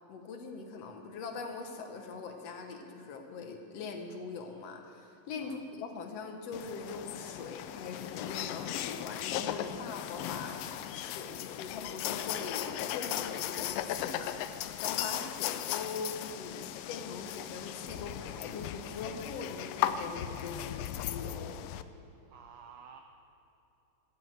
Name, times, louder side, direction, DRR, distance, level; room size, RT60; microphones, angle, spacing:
voice 1, 0.1-10.6 10.9-16.6 16.9-21.6, left 4 dB, 65° left, 4 dB, 2.0 m, -42 dB
sound 1, 6.5-21.8, left 11 dB, 90° left, 1.4 m, -37 dB
voice 2, 21.9-23.0, right 7 dB, 85° right, 5 dB, 1.3 m, -53 dB
14.0 x 7.9 x 7.9 m, 2.9 s
omnidirectional pair, 3.3 m